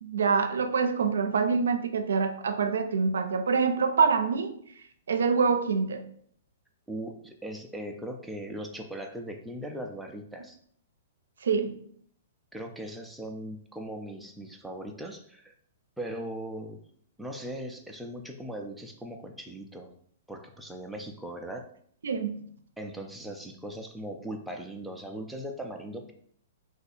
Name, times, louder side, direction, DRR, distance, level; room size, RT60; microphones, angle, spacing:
voice 1, 0.0-4.5 5.1-6.0 11.4-11.7 22.0-22.4, right 5 dB, 85° right, 9 dB, 0.5 m, -25 dB
voice 2, 6.9-10.6 12.5-15.5 16.0-16.8 17.2-20.0 20.3-21.7 22.8-26.1, right 1 dB, 5° right, 2 dB, 0.4 m, -39 dB
2.7 x 2.4 x 4.2 m, 0.62 s
hypercardioid pair, 145°, 0 cm